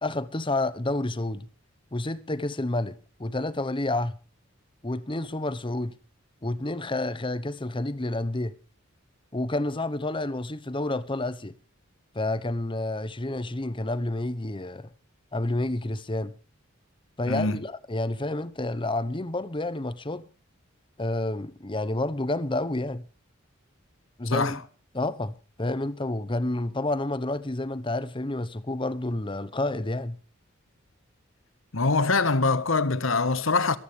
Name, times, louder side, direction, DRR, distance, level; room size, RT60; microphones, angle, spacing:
voice 1, 0.0-1.5 1.9-4.2 4.8-5.9 6.4-8.5 9.3-11.5 12.1-14.9 15.3-16.3 17.2-20.3 21.0-23.0 24.2-24.6 24.9-30.2, left 2 dB, 25° left, 0.9 m, -29 dB
voice 2, 17.3-17.6 24.2-24.6 31.7-33.8, left 3 dB, 70° left, 1.3 m, -24 dB
22.0 x 14.0 x 3.3 m
head